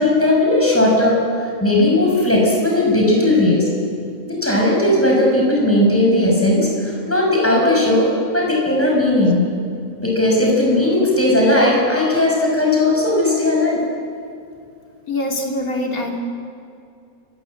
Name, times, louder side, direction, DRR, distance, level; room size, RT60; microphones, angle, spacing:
voice 1, 0.0-3.7 4.3-9.5 10.0-13.8, left 1 dB, 10° left, -2 dB, 6.2 m, -17 dB
voice 2, 15.1-16.2, left 1 dB, 70° left, 1 dB, 3.3 m, -23 dB
29.0 x 17.0 x 7.8 m, 2.4 s
omnidirectional pair, 1.5 m